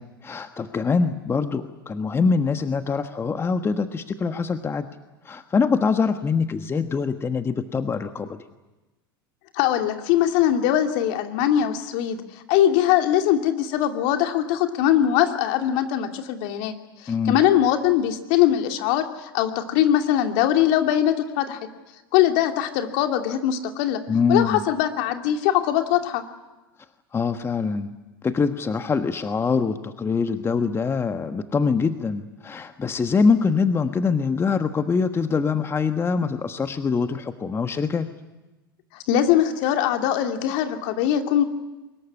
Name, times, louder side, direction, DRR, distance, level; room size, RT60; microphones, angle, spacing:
voice 1, 0.0-4.9 5.2-8.4 17.1-17.4 24.1-24.6 27.1-27.9 28.2-38.1, left 5 dB, 20° left, 8 dB, 1.4 m, -24 dB
voice 2, 9.5-12.2 12.5-16.8 17.0-21.6 22.1-24.0 24.3-26.2 39.1-41.4, left 11 dB, 60° left, 5 dB, 2.7 m, -21 dB
24.0 x 21.5 x 9.7 m, 1.1 s
hypercardioid pair, 90°, 12 cm